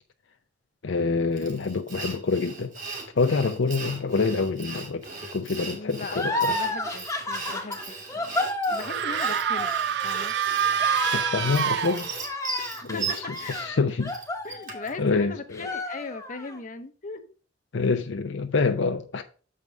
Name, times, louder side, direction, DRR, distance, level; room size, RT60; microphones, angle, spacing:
voice 1, 0.8-2.7 3.2-5.1 5.3-6.5 10.9-12.1 12.8-13.1 13.5-14.1 15.0-15.7 17.7-19.2, left 4 dB, 70° left, 0.6 m, -26 dB
voice 2, 1.4-1.7 5.7-8.4 8.7-9.7 10.0-10.6 12.9-13.6 14.4-17.3, left 3 dB, 40° left, 0.8 m, -39 dB
Sawing, 1.4-15.0, right 4 dB, 45° right, 2.0 m, -38 dB
sound 1, 6.1-15.2 15.5-16.6, left 2 dB, 15° left, 1.0 m, -32 dB
sound 2, 8.8-12.5, right 9 dB, 60° right, 0.3 m, -26 dB
6.7 x 5.0 x 5.0 m
head